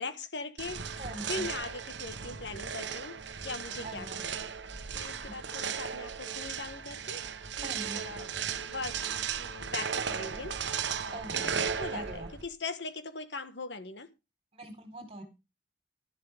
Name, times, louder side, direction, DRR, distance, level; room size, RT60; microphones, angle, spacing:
voice 1, 0.0-1.0 1.2-3.2 3.4-4.5 4.9-7.2 7.6-10.6 11.0-14.1, left 3 dB, 65° left, 1.5 m, -40 dB
sound 1, 0.6-12.5, right 7 dB, 70° right, 1.1 m, -36 dB
voice 2, 1.0-1.4 3.8-4.2 7.6-8.0 11.1-12.3 14.5-15.2, right 1 dB, 30° right, 4.2 m, -42 dB
sound 2, 2.3-6.6, right 3 dB, 5° left, 5.6 m, -54 dB
13.0 x 11.5 x 3.6 m
head